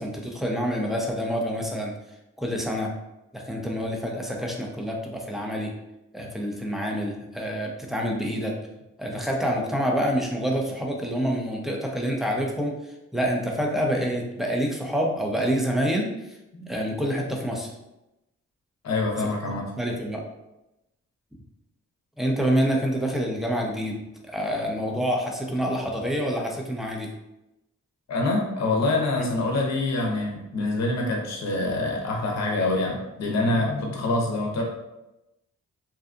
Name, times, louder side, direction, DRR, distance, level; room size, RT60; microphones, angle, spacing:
voice 1, 0.0-1.9 2.4-2.9 3.3-5.7 6.1-8.5 9.0-16.4 16.7-17.7 19.2-19.3 19.8-20.2 22.2-27.1 29.2-29.3, equal, ahead, -1 dB, 0.6 m, -27 dB
voice 2, 18.8-19.7 28.1-34.6, left 2 dB, 60° left, 0 dB, 0.7 m, -25 dB
2.7 x 2.2 x 2.5 m, 0.94 s
cardioid pair, 55°, 31 cm